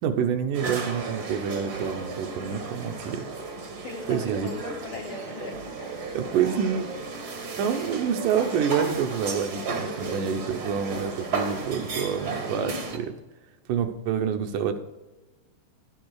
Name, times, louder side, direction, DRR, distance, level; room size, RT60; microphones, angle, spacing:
voice 1, 0.0-3.3 4.1-4.5 5.4-5.5 6.1-6.9 7.6-13.1 13.7-14.8, right 7 dB, 85° right, 7 dB, 2.4 m, -27 dB
sound 1, 0.5-13.0, right 3 dB, 65° right, 0.9 m, -34 dB
voice 2, 3.8-5.9, left 3 dB, 85° left, 1 dB, 1.1 m, -38 dB
11.5 x 7.6 x 4.7 m, 1.1 s
omnidirectional pair, 3.6 m